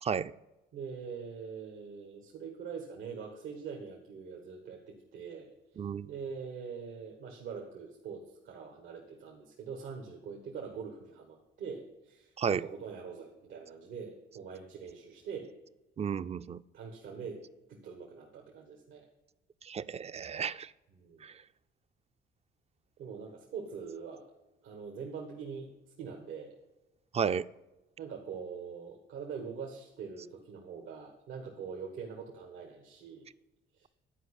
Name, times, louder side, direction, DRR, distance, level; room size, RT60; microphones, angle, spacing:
voice 1, 0.0-0.3 5.8-6.1 12.4-12.6 16.0-16.6 19.6-20.7 21.2-21.3 27.1-27.5, right 7 dB, 30° right, 0.4 m, -32 dB
voice 2, 0.7-5.5 6.0-15.5 16.7-17.4 17.7-19.1 20.9-21.3 23.0-24.2 24.6-25.7 26.0-26.5 28.0-33.3 33.8-33.9, right 6 dB, 90° right, 1.6 m, -43 dB
11.0 x 5.0 x 8.2 m
cardioid pair, 90°, 20 cm